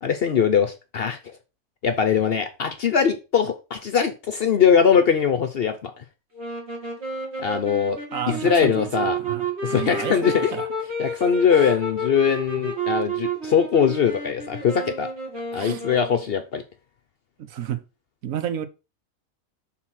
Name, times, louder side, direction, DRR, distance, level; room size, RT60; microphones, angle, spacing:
voice 1, 0.0-1.4 1.8-6.0 7.4-8.0 8.3-9.2 9.6-10.5 11.0-15.1 15.5-16.6, left 7 dB, 55° left, 0.7 m, -21 dB
sound 1, 6.3-16.3, right 1 dB, 50° right, 2.4 m, -31 dB
voice 2, 8.1-10.7 11.5-11.8 15.5-15.8 17.4-17.8 18.2-18.7, right 9 dB, 70° right, 1.2 m, -31 dB
6.3 x 4.1 x 5.6 m
omnidirectional pair, 1.5 m